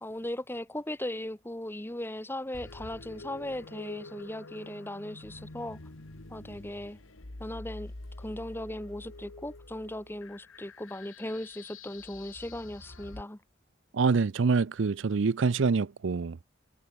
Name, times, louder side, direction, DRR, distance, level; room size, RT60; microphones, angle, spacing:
voice 1, 0.0-5.8 6.3-7.0 7.4-13.4, left 1 dB, 10° left, 1.2 m, -38 dB
sound 1, 2.5-13.2, left 2 dB, 75° left, 1.7 m, -47 dB
voice 2, 13.9-16.4, right 4 dB, 60° right, 0.5 m, -26 dB
head